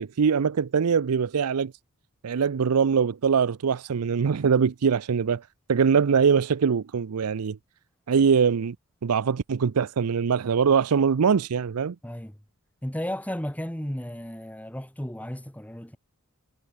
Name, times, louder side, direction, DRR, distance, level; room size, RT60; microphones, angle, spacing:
voice 1, 0.0-1.7 2.2-5.4 5.7-7.6 8.1-8.8 9.0-12.0, right 6 dB, 85° right, 0.5 m, -22 dB
voice 2, 12.0-12.4 12.8-16.0, equal, 5° left, 1.6 m, -34 dB
head